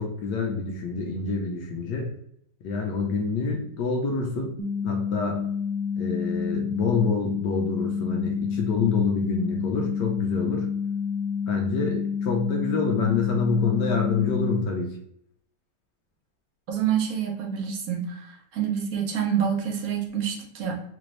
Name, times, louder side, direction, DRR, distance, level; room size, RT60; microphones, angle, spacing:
voice 1, 0.0-2.1 2.6-4.5 4.8-5.4 6.0-10.7 11.5-15.0, left 4 dB, 80° left, 0 dB, 1.3 m, -27 dB
sound 1, 4.6-14.6, left 6 dB, 30° left, 0.3 m, -29 dB
voice 2, 16.7-20.8, right 8 dB, 60° right, 1 dB, 1.2 m, -27 dB
4.1 x 2.6 x 3.1 m, 0.71 s
omnidirectional pair, 1.9 m